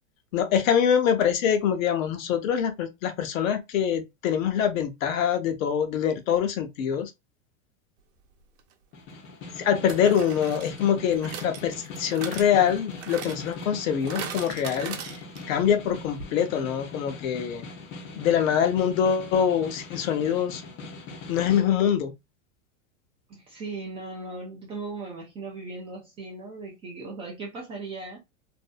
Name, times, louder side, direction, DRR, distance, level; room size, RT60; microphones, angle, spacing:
voice 1, 0.3-7.1 9.6-14.9 15.5-17.6 18.1-20.6 21.3-22.1, left 8 dB, 75° left, 0.8 m, -24 dB
sound 1, 8.6-8.7 9.9-15.6 15.9-16.0 16.2-16.3, right 8 dB, 60° right, 0.7 m, -40 dB
Snare drum, 8.9-21.7, left 3 dB, 30° left, 0.5 m, -41 dB
voice 2, 23.3-28.2, right 3 dB, 15° right, 0.3 m, -38 dB
2.6 x 2.1 x 2.3 m
supercardioid pair, 130°, 41 cm